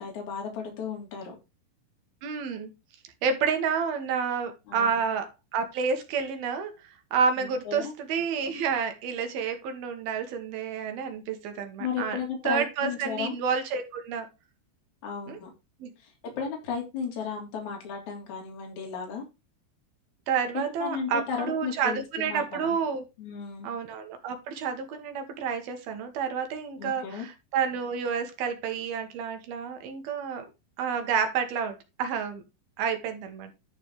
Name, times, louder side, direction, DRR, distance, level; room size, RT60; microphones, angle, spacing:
voice 1, 0.0-1.3 4.7-5.0 7.4-7.9 11.8-13.3 15.0-15.5 16.0-16.1 16.4-19.2 20.5-22.8 23.2-23.7 26.8-27.3, left 6 dB, 45° left, 1 dB, 4.2 m, -34 dB
voice 2, 2.2-2.7 3.2-12.2 12.4-14.3 15.3-15.4 15.8-15.9 20.3-23.0 23.6-30.4 30.8-32.4 32.8-33.5, right 6 dB, 65° right, 7 dB, 3.1 m, -29 dB
11.5 x 4.8 x 4.8 m, 0.26 s
omnidirectional pair, 5.0 m